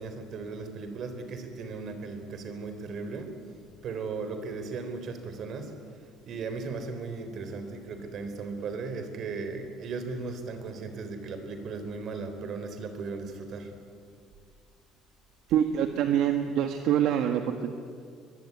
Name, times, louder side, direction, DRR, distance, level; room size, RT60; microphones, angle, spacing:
voice 1, 0.0-3.4 3.8-13.8, right 4 dB, 50° right, 8 dB, 3.9 m, -37 dB
voice 2, 15.5-17.7, right 10 dB, 65° right, 6 dB, 1.5 m, -25 dB
23.5 x 22.0 x 9.6 m, 2.2 s
cardioid pair, 140°, 0 cm